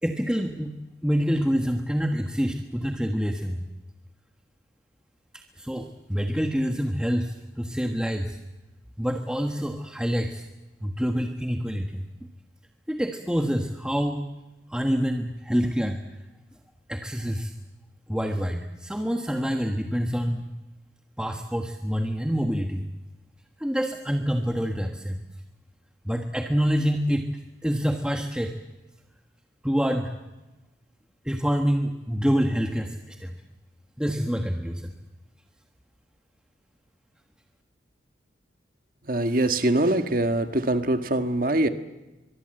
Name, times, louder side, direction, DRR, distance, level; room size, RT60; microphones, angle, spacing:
voice 1, 0.0-3.6 5.3-8.4 9.0-10.5 10.8-12.1 12.9-14.2 14.7-16.2 16.9-17.5 18.1-20.5 21.2-22.9 23.6-25.2 26.0-28.5 29.6-30.1 31.2-33.3 34.0-34.9, equal, 5° right, 4 dB, 1.3 m, -27 dB
voice 2, 39.0-41.7, right 1 dB, 50° right, 8 dB, 1.6 m, -23 dB
23.5 x 23.0 x 7.8 m, 1.1 s
head